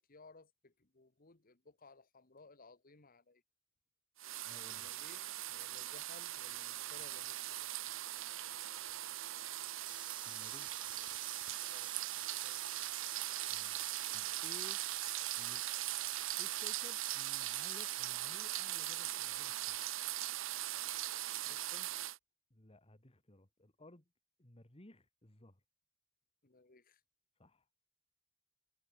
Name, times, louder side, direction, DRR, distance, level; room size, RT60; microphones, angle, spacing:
voice 1, 0.0-3.4 4.7-7.6 11.7-12.6 21.4-21.9 26.4-27.0, left 3 dB, 45° left, 1.6 m, -60 dB
sound 1, 4.2-22.2, right 14 dB, 70° right, 1.0 m, -40 dB
voice 2, 4.4-4.9 10.2-10.8 13.5-13.8 14.1-14.8 15.4-15.6 16.4-19.8 22.5-24.1 24.4-25.6 27.4-27.7, left 1 dB, 30° left, 2.4 m, -58 dB
sound 2, 9.8-18.0, right 6 dB, 25° right, 2.3 m, -53 dB
head